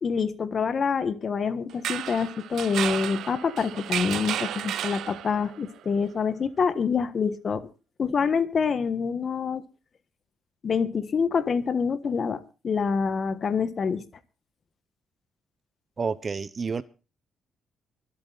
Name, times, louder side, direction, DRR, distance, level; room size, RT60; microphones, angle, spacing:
voice 1, 0.0-7.7 8.0-9.6 10.6-12.4 12.6-14.0, left 5 dB, 45° left, 1.4 m, -26 dB
sound 1, 1.7-5.6, right 11 dB, 75° right, 0.7 m, -32 dB
voice 2, 16.0-16.8, right 5 dB, 35° right, 0.9 m, -29 dB
24.0 x 8.9 x 4.0 m
cardioid pair, 90°, 0 cm